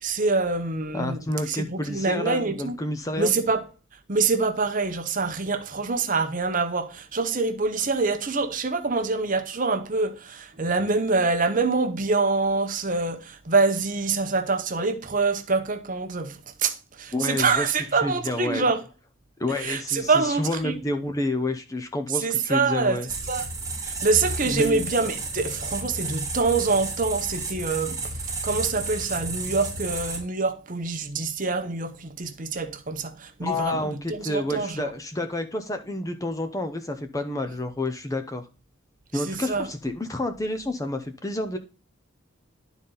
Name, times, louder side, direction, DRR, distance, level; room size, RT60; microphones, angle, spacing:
voice 1, 0.0-2.8 3.2-3.6 4.1-18.8 19.6-20.8 22.1-23.0 23.3-23.4 23.8-34.9 39.1-39.7, right 4 dB, 40° right, 0.8 m, -25 dB
voice 2, 0.9-3.3 17.1-17.7 18.0-18.7 19.4-23.1 24.4-24.8 33.4-38.4 39.1-41.6, left 1 dB, 15° left, 0.6 m, -29 dB
sound 1, 23.1-30.2, right 3 dB, 15° right, 1.6 m, -32 dB
11.5 x 4.0 x 3.9 m
head